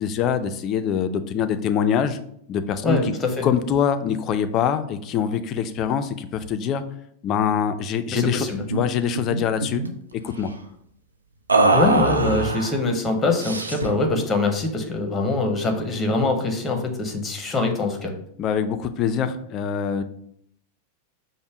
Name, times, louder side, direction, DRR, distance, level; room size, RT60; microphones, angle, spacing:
voice 1, 0.0-2.2 2.5-3.1 3.4-6.8 7.2-9.8 10.2-10.5 18.4-20.0, left 8 dB, 35° left, 10 dB, 0.3 m, -24 dB
voice 2, 2.8-3.5 8.1-8.6 11.7-18.1, left 2 dB, 15° left, 4 dB, 0.7 m, -23 dB
sound 1, 8.2-8.3 8.6-8.8 9.1-9.9 11.5-12.7 13.4-14.0, right 3 dB, 80° right, 0.4 m, -22 dB
5.2 x 2.1 x 4.6 m, 0.70 s
figure-of-eight pair, 90°, 0 cm